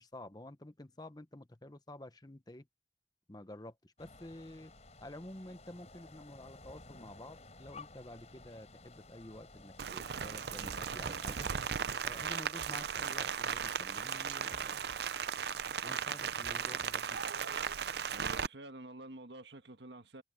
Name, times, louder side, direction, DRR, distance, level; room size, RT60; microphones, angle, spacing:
voice 1, 0.0-2.7 3.3-4.7 5.0-11.5 12.0-14.8 15.8-17.2, left 1 dB, 25° left, 1.1 m, -50 dB
sound 1, 4.0-11.7, left 3 dB, 40° left, 5.8 m, -54 dB
Rain, 9.8-18.5, right 7 dB, 65° right, 0.6 m, -37 dB
Drum kit / Snare drum, 10.7-11.2 11.6-11.7 12.0-13.2 13.5-13.8 14.0-15.1 15.5-15.6 15.8-17.0 17.4-18.3, left 2 dB, 65° left, 2.0 m, -58 dB
voice 2, 18.1-20.2, right 2 dB, 80° right, 1.5 m, -49 dB
head